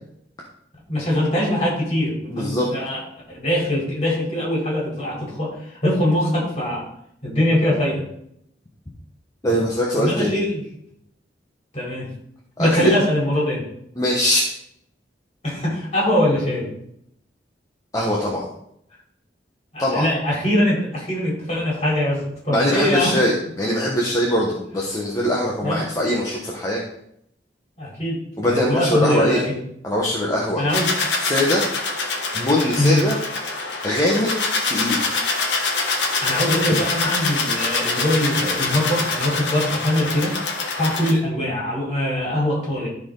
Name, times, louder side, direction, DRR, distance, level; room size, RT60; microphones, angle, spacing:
voice 1, 0.9-3.0 3.3-6.8 7.2-8.0 10.0-10.6 11.7-12.1 12.6-13.6 15.4-16.7 19.7-23.1 25.6-25.8 27.8-29.5 30.6-30.9 32.8-33.0 36.0-40.4 40.8-42.9, left 1 dB, 40° left, -5 dB, 4.0 m, -22 dB
voice 2, 2.3-2.7 9.4-10.4 12.6-12.9 14.0-14.5 17.9-18.5 19.8-20.1 22.5-26.8 28.4-29.4 29.8-30.6 31.2-31.6 32.3-33.2 33.8-34.3 34.7-35.1, left 1 dB, 20° left, -3 dB, 1.2 m, -21 dB
sound 1, 30.7-41.1, left 3 dB, 90° left, 1.5 m, -25 dB
13.0 x 4.5 x 4.0 m, 0.73 s
head